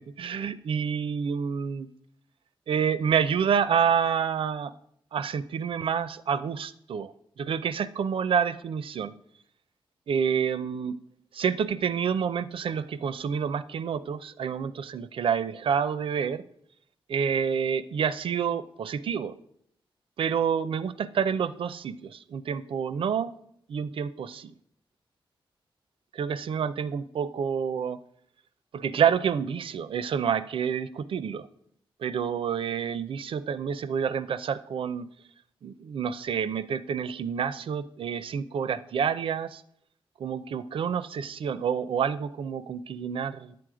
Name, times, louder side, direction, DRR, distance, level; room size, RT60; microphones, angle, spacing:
voice 1, 0.2-1.9 2.7-4.7 5.1-9.1 10.1-11.0 11.3-16.4 17.1-19.4 20.2-23.3 23.7-24.5 26.1-28.0 28.7-31.5 32.0-35.1 35.6-39.6 40.2-43.6, right 7 dB, 70° right, 14 dB, 0.5 m, -28 dB
10.5 x 7.8 x 4.9 m, 0.71 s
wide cardioid pair, 125°, 9 cm